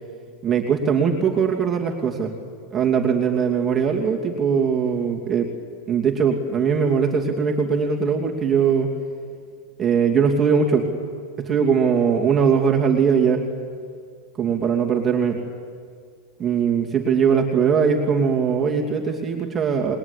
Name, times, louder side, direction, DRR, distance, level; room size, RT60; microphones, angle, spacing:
voice 1, 0.4-2.3 2.7-5.5 5.9-8.9 9.8-10.9 11.4-13.4 14.4-15.4 16.4-20.0, right 6 dB, 15° right, 0 dB, 2.6 m, -20 dB
26.0 x 21.0 x 10.0 m, 2.1 s
supercardioid pair, 155°, 0 cm